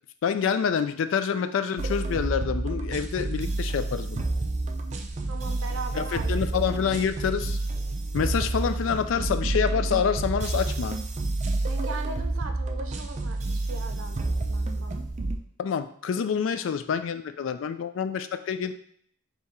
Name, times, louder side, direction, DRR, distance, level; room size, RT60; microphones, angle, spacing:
voice 1, 0.2-4.3 5.9-7.6 8.1-11.0 15.6-18.7, left 7 dB, 75° left, 11 dB, 0.3 m, -27 dB
sound 1, 1.8-15.4, right 2 dB, 35° right, 0.4 m, -29 dB
voice 2, 5.2-6.8 11.6-15.0, right 3 dB, 85° right, 5 dB, 0.6 m, -39 dB
3.6 x 2.9 x 4.1 m, 0.64 s
head